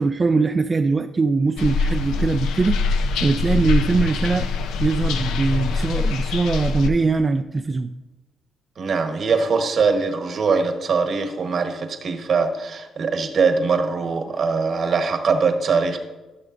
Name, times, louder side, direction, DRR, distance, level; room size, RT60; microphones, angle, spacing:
voice 1, 0.0-2.8 3.2-4.5 4.8-7.9 14.3-14.4, right 4 dB, 30° right, 6 dB, 0.4 m, -21 dB
sound 1, 1.6-6.9, left 4 dB, 85° left, 0.6 m, -23 dB
voice 2, 8.8-16.0, right 4 dB, 55° right, 6 dB, 1.1 m, -22 dB
15.0 x 6.3 x 2.5 m, 1.1 s
cardioid pair, 90°, 0 cm